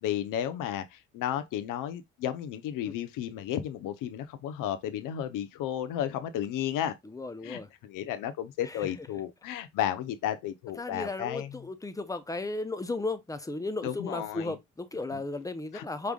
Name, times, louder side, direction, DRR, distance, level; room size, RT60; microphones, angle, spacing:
voice 1, 0.0-7.0 7.4-11.6 13.8-14.5 15.1-15.2 15.7-15.9, left 10 dB, 80° left, 0.9 m, -33 dB
voice 2, 7.1-7.7 8.7-8.8 10.8-16.1, left 2 dB, 10° left, 0.8 m, -35 dB
5.2 x 3.4 x 2.3 m
supercardioid pair, 75°, 31 cm